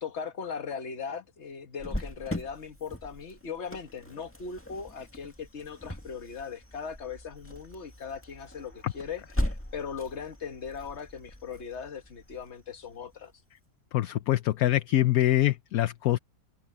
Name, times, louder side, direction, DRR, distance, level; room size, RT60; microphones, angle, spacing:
voice 1, 0.0-13.3, left 6 dB, 45° left, 1.6 m, -39 dB
Cricket, 1.8-13.2, left 1 dB, 5° left, 2.0 m, -39 dB
voice 2, 13.9-16.2, left 14 dB, 65° left, 1.0 m, -24 dB
omnidirectional pair, 1.8 m